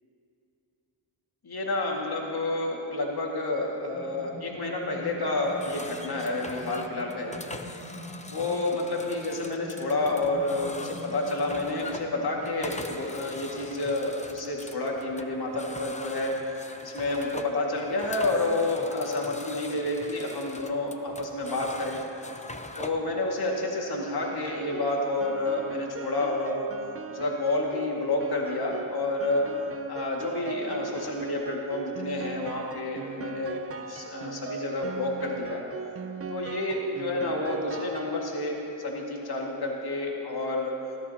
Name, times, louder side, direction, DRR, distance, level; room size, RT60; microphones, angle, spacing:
voice 1, 1.4-7.4 8.3-16.3 16.8-22.0 22.8-26.7 27.1-29.4 29.9-33.6 33.9-35.6 36.3-40.7, left 2 dB, 50° left, -1 dB, 2.1 m, -29 dB
sound 1, 3.9-12.8, left 1 dB, 80° left, 2.3 m, -45 dB
sound 2, 5.4-23.1, left 2 dB, 15° left, 0.8 m, -42 dB
Piano, 24.2-38.6, right 5 dB, 30° right, 0.6 m, -39 dB
19.5 x 14.5 x 2.9 m, 2.9 s
cardioid pair, 60°, 49 cm